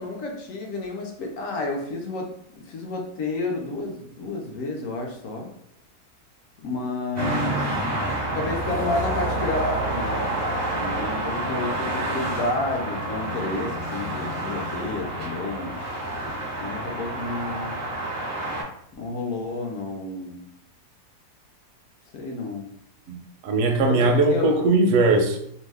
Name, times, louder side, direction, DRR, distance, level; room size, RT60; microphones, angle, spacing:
voice 1, 0.0-5.5 6.6-7.8 8.2-15.8 16.6-17.8 18.9-20.5 22.1-22.7 23.9-24.6, left 2 dB, 65° left, 1 dB, 0.9 m, -31 dB
sound 1, 7.2-18.6, right 1 dB, 20° right, 0.4 m, -28 dB
voice 2, 23.1-25.4, right 2 dB, 65° right, 2 dB, 0.7 m, -20 dB
2.8 x 2.1 x 3.3 m, 0.71 s
omnidirectional pair, 1.7 m